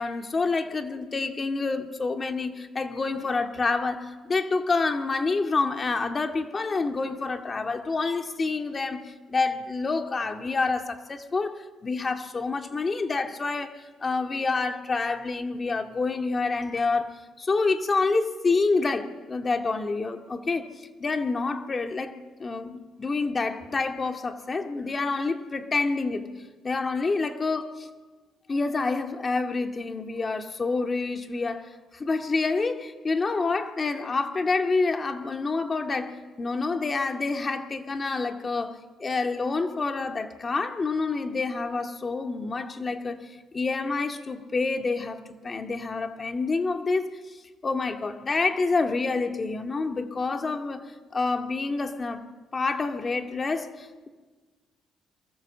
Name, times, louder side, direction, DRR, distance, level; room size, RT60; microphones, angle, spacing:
voice 1, 0.0-17.1 17.4-20.7 21.0-26.3 26.6-27.9 28.5-43.2 43.5-47.4 47.6-52.2 52.5-54.1, left 3 dB, 35° left, 5 dB, 2.1 m, -28 dB
29.5 x 23.0 x 7.5 m, 1.3 s
cardioid pair, 90°, 0 cm